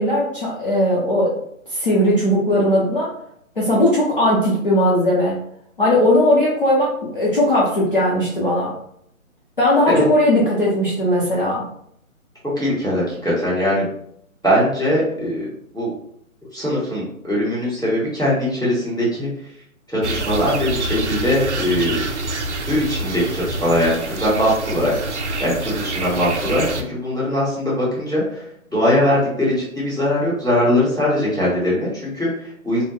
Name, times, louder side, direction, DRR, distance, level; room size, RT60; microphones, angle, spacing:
voice 1, 0.0-1.4 1.7-3.1 3.6-5.4 5.8-8.7 9.6-11.6, left 1 dB, 40° left, -7 dB, 0.7 m, -18 dB
voice 2, 12.4-13.9 14.4-15.5 15.7-15.9 16.5-19.3 19.9-22.0 22.7-24.9 25.4-28.4 28.7-32.8, left 1 dB, ahead, -20 dB, 1.3 m, -21 dB
sound 1, 20.0-26.8, right 2 dB, 55° right, 0.5 m, -26 dB
3.7 x 2.1 x 3.2 m, 0.70 s
hypercardioid pair, 180°, 42 cm